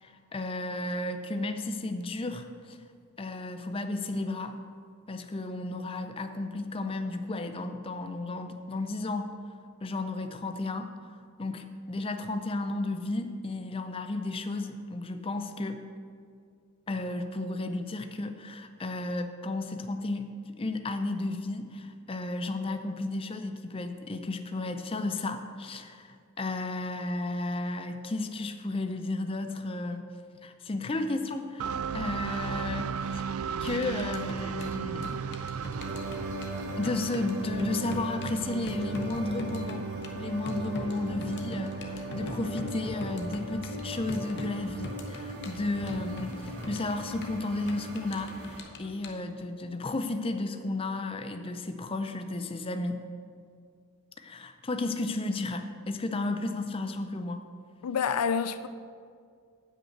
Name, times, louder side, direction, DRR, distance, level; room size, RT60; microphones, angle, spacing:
voice 1, 0.0-2.8 3.2-4.6 5.1-9.3 9.8-10.9 11.4-15.8 16.9-20.3 20.6-30.1 30.4-33.2 33.6-35.2 36.8-39.9 40.1-53.0 54.2-57.4, left 2 dB, 25° left, 0.5 m, -33 dB
sound 1, 31.6-43.4, right 7 dB, 70° right, 0.3 m, -36 dB
sound 2, 33.6-49.1, left 1 dB, 50° left, 0.9 m, -43 dB
sound 3, 35.8-48.6, equal, 50° right, 1.5 m, -40 dB
voice 2, 57.8-58.7, left 6 dB, 85° left, 0.4 m, -28 dB
8.8 x 5.2 x 7.8 m
head